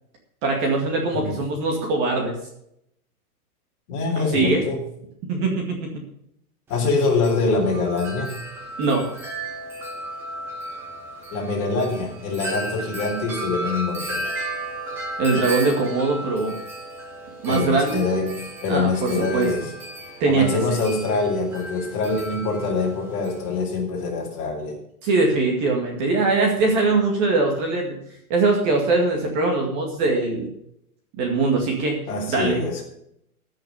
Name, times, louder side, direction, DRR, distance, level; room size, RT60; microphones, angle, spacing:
voice 1, 0.4-2.3 4.2-4.6 5.3-5.9 8.8-9.1 15.2-16.6 17.4-18.0 18.7-19.5 20.2-20.8 25.0-28.0 28.3-30.5 31.2-32.0 32.3-32.6, right 3 dB, 25° right, 1 dB, 2.1 m, -22 dB
voice 2, 1.1-1.4 3.9-4.8 6.7-8.4 11.3-14.3 17.5-19.7 20.3-24.8 32.1-32.8, left 3 dB, 30° left, -1 dB, 4.0 m, -24 dB
Wind chime, 6.7-23.6, right 1 dB, 5° right, 0.6 m, -34 dB
14.5 x 6.5 x 6.8 m, 0.75 s
hypercardioid pair, 170°, 45 cm